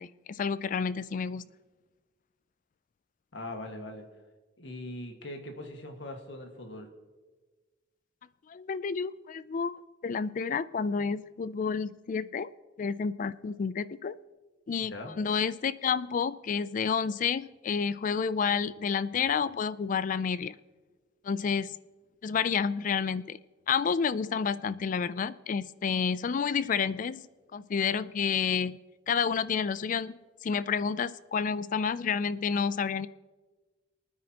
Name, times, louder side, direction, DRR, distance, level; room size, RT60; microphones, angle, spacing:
voice 1, 0.0-1.4 8.5-9.8 10.0-12.5 12.8-14.2 14.7-20.6 21.2-21.7 22.2-23.4 23.7-27.3 27.5-28.8 29.1-33.1, left 6 dB, 45° left, 17 dB, 0.4 m, -30 dB
voice 2, 3.3-4.1 4.6-6.9 14.9-15.1, left 1 dB, 85° left, 3 dB, 1.7 m, -41 dB
24.0 x 9.6 x 2.9 m, 1.3 s
head